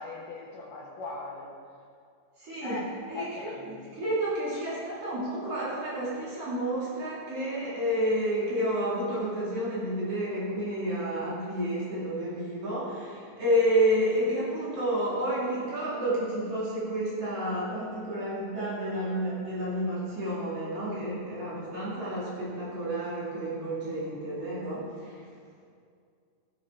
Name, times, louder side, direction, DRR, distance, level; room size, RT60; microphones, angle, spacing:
voice 1, 0.0-1.6 2.6-2.9 3.1-3.8 4.5-4.7 7.5-7.7, left 3 dB, 85° left, -7 dB, 2.9 m, -40 dB
voice 2, 2.4-2.8 3.1-25.2, equal, 50° right, -8 dB, 3.5 m, -30 dB
15.0 x 8.1 x 3.7 m, 2.3 s
omnidirectional pair, 3.7 m